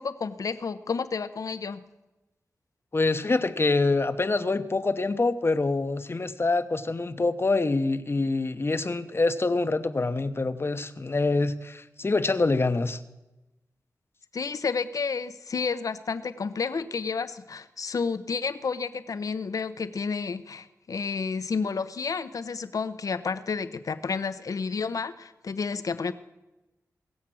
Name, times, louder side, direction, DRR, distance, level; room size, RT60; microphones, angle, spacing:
voice 1, 0.0-1.8 14.3-26.1, left 5 dB, 70° left, 0.8 m, -31 dB
voice 2, 2.9-13.0, left 3 dB, 40° left, 1.0 m, -25 dB
20.5 x 7.4 x 6.3 m
cardioid pair, 55°, 6 cm